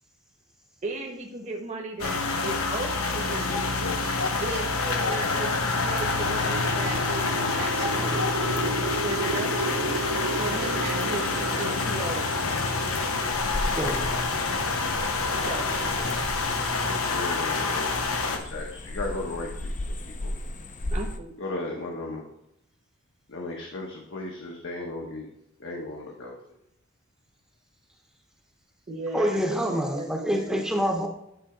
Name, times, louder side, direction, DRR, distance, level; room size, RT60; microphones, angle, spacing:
voice 1, 0.8-3.7 4.4-8.4 9.0-12.7 15.5-15.9 20.9-21.3 28.9-30.6, right 2 dB, 35° right, 0 dB, 1.2 m, -36 dB
sound 1, 2.0-18.4, left 3 dB, 80° left, 1.0 m, -27 dB
sound 2, 6.1-14.1, right 2 dB, 80° right, 0.5 m, -34 dB
sound 3, 11.1-21.2, left 1 dB, 35° left, 0.7 m, -37 dB
voice 2, 13.7-14.1 29.1-31.1, equal, 5° right, 1 dB, 0.9 m, -26 dB
voice 3, 15.9-16.3 16.8-19.7 20.0-20.3 21.4-22.2 23.3-25.3 25.6-26.3, left 2 dB, 60° left, -1 dB, 1.1 m, -36 dB
10.0 x 3.5 x 5.0 m, 0.82 s
head